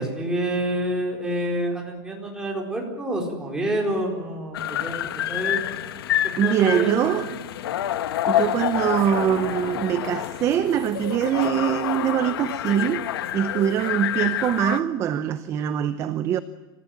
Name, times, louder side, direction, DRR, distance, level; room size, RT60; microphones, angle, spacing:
voice 1, 0.0-5.0 5.3-5.6 6.4-7.3, right 1 dB, 5° right, 4.3 m, -27 dB
sound 1, 4.5-14.8, left 12 dB, 90° left, 1.3 m, -28 dB
voice 2, 6.4-7.3 8.3-16.4, right 10 dB, 25° right, 0.7 m, -23 dB
26.5 x 16.0 x 9.2 m
supercardioid pair, 165°, 12 cm